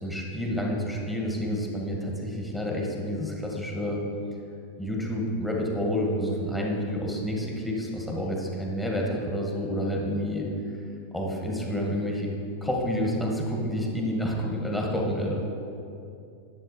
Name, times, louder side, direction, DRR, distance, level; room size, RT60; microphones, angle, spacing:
voice 1, 0.0-4.0 4.8-10.8 11.1-12.3 12.6-15.5, equal, 5° left, -1 dB, 1.8 m, -29 dB
11.0 x 7.4 x 4.3 m, 2.6 s
figure-of-eight pair, 90°, 0 cm